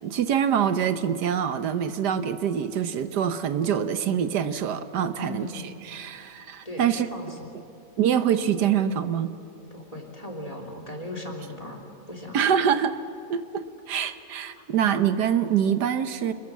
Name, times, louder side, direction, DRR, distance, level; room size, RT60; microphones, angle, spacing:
voice 1, 0.0-7.1 8.0-9.3 12.3-13.0 13.3-16.3, right 8 dB, 85° right, 10 dB, 1.6 m, -25 dB
voice 2, 5.1-5.8 6.6-7.5 9.7-11.8 12.1-12.4, left 1 dB, 20° left, 3 dB, 3.1 m, -38 dB
27.5 x 21.0 x 7.4 m, 3.0 s
omnidirectional pair, 1.7 m